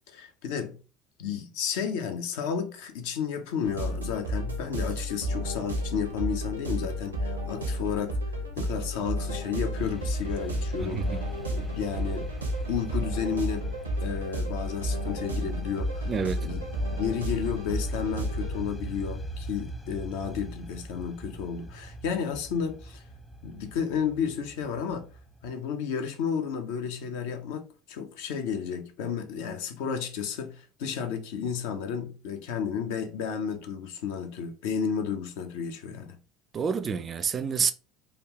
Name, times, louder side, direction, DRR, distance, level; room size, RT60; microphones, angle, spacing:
voice 1, 0.1-0.8 1.2-8.1 8.6-12.3 12.7-13.7 14.0-16.1 16.4-16.6 16.9-23.0 23.4-25.1 25.4-36.2, left 7 dB, 65° left, 0.5 m, -32 dB
sound 1, 3.6-18.7, equal, 85° right, 0.6 m, -32 dB
sound 2, 9.8-25.5, right 1 dB, 15° left, 0.6 m, -40 dB
voice 2, 10.8-11.2 16.1-16.5 36.5-37.7, right 6 dB, 35° right, 0.3 m, -28 dB
3.4 x 2.3 x 2.8 m
figure-of-eight pair, 65°, 0 cm